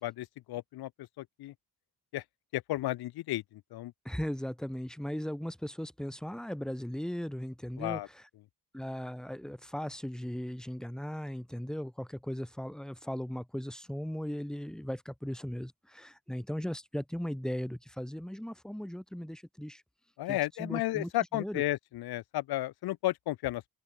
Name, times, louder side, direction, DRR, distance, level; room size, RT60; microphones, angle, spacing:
voice 1, 0.0-1.5 2.1-2.2 2.5-3.9 7.8-8.1 20.2-23.6, left 16 dB, 70° left, 0.5 m, -33 dB
voice 2, 4.0-8.2 8.7-19.8 20.3-21.6, equal, ahead, 1.5 m, -38 dB
open air
cardioid pair, 70°, 39 cm